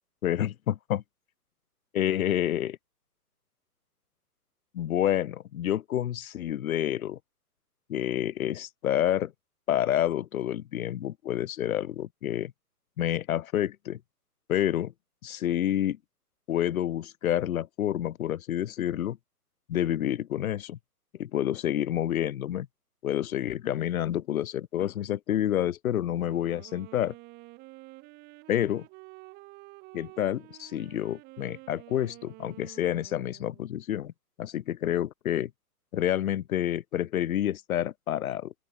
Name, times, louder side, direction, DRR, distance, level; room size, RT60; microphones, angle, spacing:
voice 1, 0.2-1.0 1.9-2.8 4.7-7.2 7.9-9.3 9.7-12.5 13.0-14.0 14.5-14.9 15.2-16.0 16.5-19.2 19.7-20.8 21.2-22.7 23.0-27.1 28.5-28.9 29.9-34.1 34.4-35.5 35.9-38.5, left 11 dB, 65° left, 0.5 m, -28 dB
Wind instrument woodwind instrument, 26.1-33.8, right 24 dB, 20° right, 2.4 m, -50 dB
open air
figure-of-eight pair, 135°, 48 cm